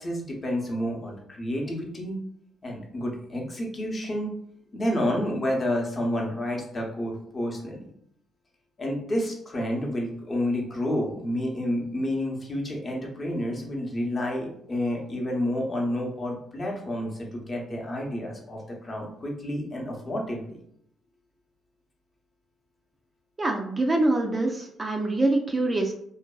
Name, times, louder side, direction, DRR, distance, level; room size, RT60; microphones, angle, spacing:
voice 1, 0.0-2.2 2.6-4.3 4.7-7.9 8.8-20.6, left 1 dB, 30° left, -1 dB, 0.7 m, -30 dB
voice 2, 23.4-25.9, right 2 dB, 25° right, 2 dB, 0.3 m, -25 dB
2.5 x 2.2 x 2.3 m, 0.69 s
cardioid pair, 90°, 0 cm